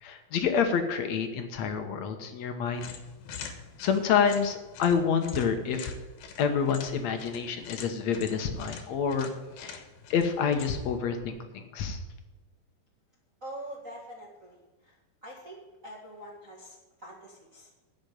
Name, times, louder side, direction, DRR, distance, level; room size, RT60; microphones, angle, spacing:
voice 1, 0.0-2.9 3.8-5.9 6.4-9.3 9.6-9.8 10.1-11.4 11.7-12.0, left 6 dB, 65° left, 7 dB, 1.9 m, -28 dB
sound 1, 2.7-11.0, left 6 dB, 90° left, 3.1 m, -44 dB
voice 2, 13.4-14.9 15.2-17.7, right 1 dB, 40° right, -2 dB, 1.2 m, -45 dB
10.5 x 6.7 x 9.1 m, 1.2 s
omnidirectional pair, 4.2 m